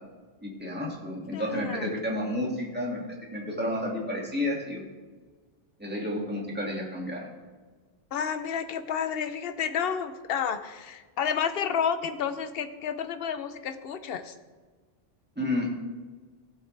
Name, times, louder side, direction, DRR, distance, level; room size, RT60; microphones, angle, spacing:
voice 1, 0.4-3.0 3.3-4.8 5.8-7.3 15.4-15.7, left 1 dB, 10° right, -3 dB, 2.1 m, -31 dB
voice 2, 1.3-1.9 8.1-14.3, left 7 dB, 70° left, 10 dB, 0.9 m, -30 dB
15.5 x 7.9 x 3.3 m, 1.4 s
omnidirectional pair, 1.1 m